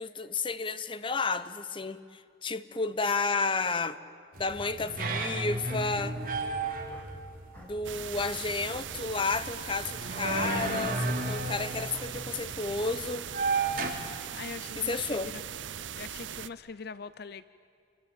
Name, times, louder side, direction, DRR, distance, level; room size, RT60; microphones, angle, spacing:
voice 1, 0.0-4.0 4.4-6.2 7.6-13.3 14.8-15.3, left 4 dB, 30° left, 13 dB, 0.9 m, -32 dB
sound 1, 4.3-13.9, right 3 dB, 50° right, 3.7 m, -34 dB
sound 2, 6.9-7.1 7.5-7.8 8.1-8.7 9.4-9.5 10.4-10.8 11.2-11.5 11.9-12.1 12.8-13.0 13.5-13.6, equal, 10° left, 3.8 m, -54 dB
sound 3, 7.8-16.5, right 9 dB, 85° right, 0.7 m, -40 dB
voice 2, 14.3-15.2 16.0-17.4, left 5 dB, 55° left, 15 dB, 0.6 m, -42 dB
28.0 x 23.0 x 9.0 m, 2.5 s
head